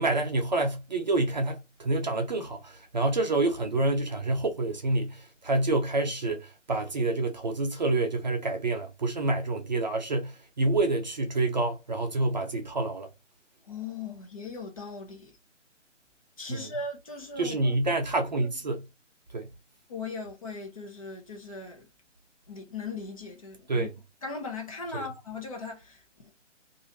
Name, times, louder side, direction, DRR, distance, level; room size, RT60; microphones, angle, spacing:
voice 1, 0.0-13.1 16.5-16.7 17.4-18.9 19.3-19.5 23.7-23.9 24.9-25.1, right 2 dB, 35° right, 0.6 m, -28 dB
voice 2, 13.7-15.3 16.4-17.7 19.9-21.9 22.5-23.9 24.2-26.3, left 4 dB, 30° left, 0.9 m, -39 dB
3.1 x 2.6 x 2.8 m
figure-of-eight pair, 145°, 37 cm